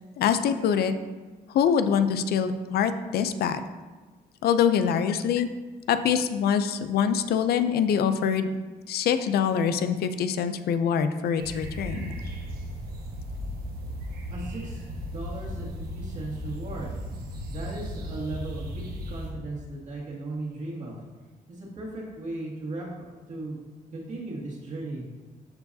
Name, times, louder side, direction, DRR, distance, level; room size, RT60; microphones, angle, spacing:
voice 1, 0.2-0.9 1.5-3.6 4.4-5.5 5.9-8.5 8.9-12.1, left 7 dB, 80° left, 10 dB, 0.5 m, -24 dB
sound 1, 11.4-19.3, equal, 75° right, 1.4 m, -36 dB
voice 2, 14.3-17.0 17.5-21.0 21.5-23.6 23.9-25.0, right 2 dB, 50° right, -4 dB, 2.2 m, -37 dB
13.0 x 4.6 x 2.8 m, 1.3 s
cardioid pair, 140°, 16 cm